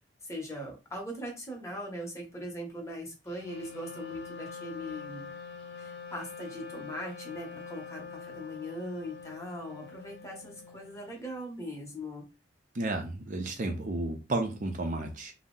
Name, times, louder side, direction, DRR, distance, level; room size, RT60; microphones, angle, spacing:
voice 1, 0.2-5.3 5.8-12.2, equal, 15° left, 0 dB, 0.9 m, -40 dB
Wind instrument woodwind instrument, 3.3-11.2, left 5 dB, 70° left, 0.6 m, -45 dB
voice 2, 12.7-15.3, right 2 dB, 45° right, 3 dB, 0.5 m, -32 dB
2.7 x 2.0 x 3.7 m, 0.28 s
head